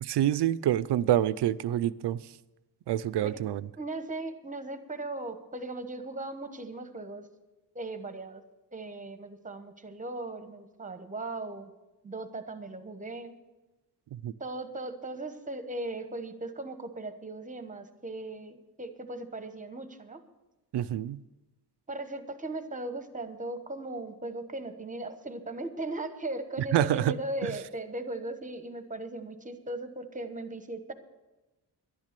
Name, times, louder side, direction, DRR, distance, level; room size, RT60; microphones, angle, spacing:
voice 1, 0.0-2.2 2.9-3.7 14.1-14.3 20.7-21.2 26.7-27.2 27.4-27.6, right 12 dB, 90° right, 0.6 m, -27 dB
voice 2, 3.8-7.3 7.7-8.4 8.7-11.7 12.0-13.4 14.4-20.2 21.9-30.9, right 2 dB, 20° right, 1.1 m, -38 dB
11.5 x 10.5 x 6.7 m
wide cardioid pair, 135°, 40 cm